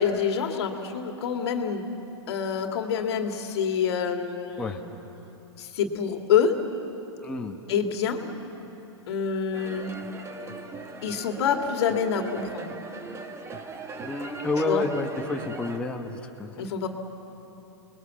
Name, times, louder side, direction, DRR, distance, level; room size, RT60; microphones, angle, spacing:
voice 1, 0.0-1.9 2.3-4.8 5.6-6.5 7.7-8.3 9.1-10.0 11.0-12.8 14.7-14.8 16.6-16.9, left 7 dB, 60° left, 5 dB, 2.2 m, -26 dB
voice 2, 7.2-7.6 14.0-16.7, left 2 dB, 5° left, 0 dB, 1.4 m, -30 dB
sound 1, 9.5-15.8, right 4 dB, 20° right, 1.6 m, -39 dB
29.5 x 21.0 x 7.3 m, 3.0 s
hypercardioid pair, 115°, 15 cm